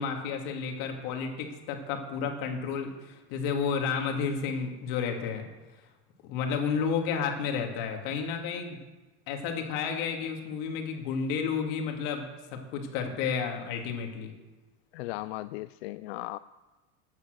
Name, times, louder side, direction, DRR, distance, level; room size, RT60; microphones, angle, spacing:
voice 1, 0.0-5.5 6.3-8.8 9.3-12.2 12.5-14.3, left 6 dB, 55° left, 3 dB, 2.7 m, -31 dB
voice 2, 14.9-16.4, left 18 dB, 90° left, 14 dB, 0.5 m, -37 dB
14.5 x 9.1 x 6.7 m, 1.2 s
supercardioid pair, 160°, 31 cm